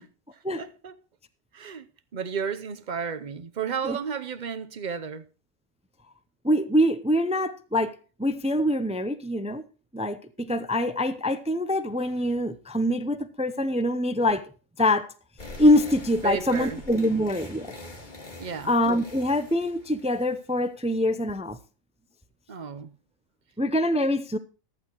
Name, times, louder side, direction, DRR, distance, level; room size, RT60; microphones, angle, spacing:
voice 1, 0.5-0.9 1.5-1.9 2.1-5.2 16.2-16.8 18.4-18.7 22.5-22.9, right 6 dB, 40° right, 0.8 m, -32 dB
voice 2, 6.4-7.9 8.2-9.6 9.9-14.5 14.8-15.1 15.6-17.7 18.6-21.6 23.6-24.4, left 1 dB, 10° right, 0.3 m, -24 dB
sound 1, 15.4-20.6, left 2 dB, 35° left, 2.1 m, -43 dB
14.5 x 12.0 x 3.0 m
omnidirectional pair, 1.4 m